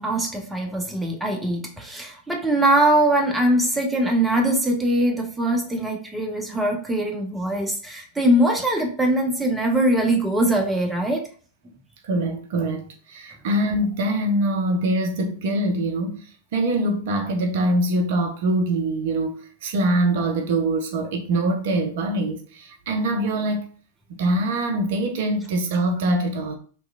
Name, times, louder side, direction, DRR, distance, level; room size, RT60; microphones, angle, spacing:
voice 1, 0.0-11.3, right 1 dB, 5° right, 0.6 m, -22 dB
voice 2, 12.0-23.7 24.2-26.5, right 1 dB, 55° right, 0.4 m, -24 dB
2.8 x 2.3 x 2.3 m
figure-of-eight pair, 90°, 0 cm